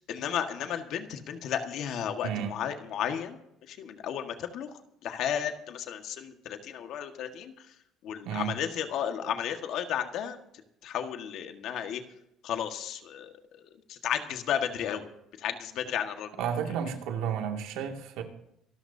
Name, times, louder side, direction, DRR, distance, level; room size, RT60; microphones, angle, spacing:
voice 1, 0.0-3.4 3.7-7.5 8.0-10.4 10.8-12.0 12.4-15.1 15.4-16.3, left 9 dB, 60° left, 6 dB, 1.7 m, -33 dB
voice 2, 2.2-2.5 8.2-8.5 16.4-18.2, right 8 dB, 80° right, 3 dB, 2.3 m, -32 dB
25.5 x 13.0 x 2.8 m, 0.78 s
cardioid pair, 135°, 0 cm